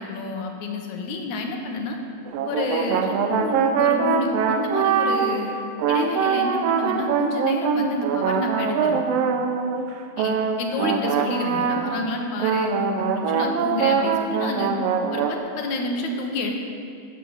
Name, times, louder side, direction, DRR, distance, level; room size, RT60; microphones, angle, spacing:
voice 1, 0.0-2.0 2.5-5.5 5.9-9.0 10.2-14.7 15.1-16.5, left 2 dB, 75° left, 3 dB, 2.3 m, -29 dB
sound 1, 2.3-5.4 5.8-12.1 12.4-15.4, right 6 dB, 75° right, 1.5 m, -23 dB
11.0 x 7.5 x 5.5 m, 2.3 s
omnidirectional pair, 3.5 m